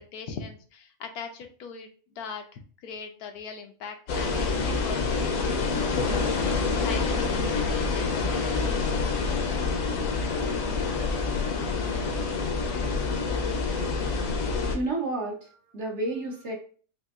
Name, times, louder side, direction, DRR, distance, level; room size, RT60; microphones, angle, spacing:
voice 1, 0.1-1.9 2.2-9.7, left 5 dB, 80° left, 5 dB, 1.2 m, -40 dB
sound 1, 4.1-14.8, left 4 dB, 65° left, 1.1 m, -27 dB
voice 2, 14.7-16.5, right 2 dB, 55° right, -1 dB, 1.1 m, -31 dB
5.3 x 2.6 x 2.4 m, 0.41 s
omnidirectional pair, 1.6 m